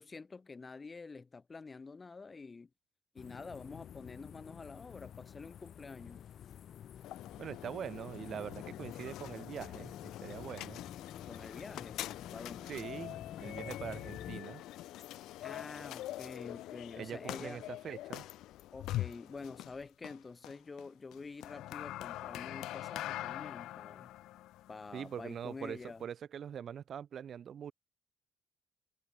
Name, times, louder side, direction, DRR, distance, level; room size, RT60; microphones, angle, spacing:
voice 1, 0.0-2.7 3.1-6.2 11.3-12.0 12.3-12.8 15.4-17.6 18.7-24.1 24.7-26.0, left 4 dB, 30° left, 2.2 m, -48 dB
sound 1, 3.2-14.4, left 9 dB, 65° left, 2.4 m, -50 dB
sound 2, 7.0-26.0, left 15 dB, 90° left, 0.7 m, -44 dB
voice 2, 7.4-10.8 12.7-14.6 17.0-18.3 24.9-27.7, right 8 dB, 60° right, 2.2 m, -43 dB
cardioid pair, 90°, 0 cm